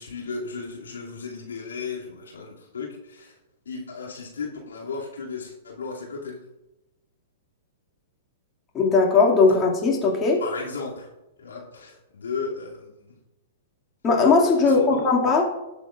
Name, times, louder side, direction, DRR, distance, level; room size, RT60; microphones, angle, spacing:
voice 1, 0.0-3.3 3.6-6.4 10.4-11.1 11.4-13.1 14.6-15.1, left 4 dB, 85° left, -3 dB, 2.6 m, -35 dB
voice 2, 8.7-10.4 14.0-15.5, left 4 dB, 25° left, -2 dB, 2.2 m, -19 dB
19.5 x 7.0 x 2.5 m, 0.97 s
hypercardioid pair, 120°, 0 cm